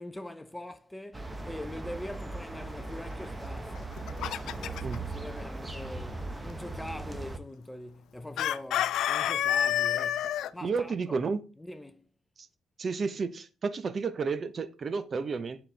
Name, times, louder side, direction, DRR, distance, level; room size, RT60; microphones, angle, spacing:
voice 1, 0.0-11.2 11.6-12.1, left 1 dB, 10° left, 0.5 m, -43 dB
sound 1, 1.1-7.4, right 2 dB, 15° right, 0.9 m, -39 dB
Chicken rooster, 3.8-5.0 8.4-10.5, left 11 dB, 80° left, 0.3 m, -28 dB
voice 2, 10.6-11.4 12.4-12.5 12.8-15.6, right 4 dB, 45° right, 0.7 m, -31 dB
9.7 x 4.3 x 3.3 m
cardioid pair, 90°, 0 cm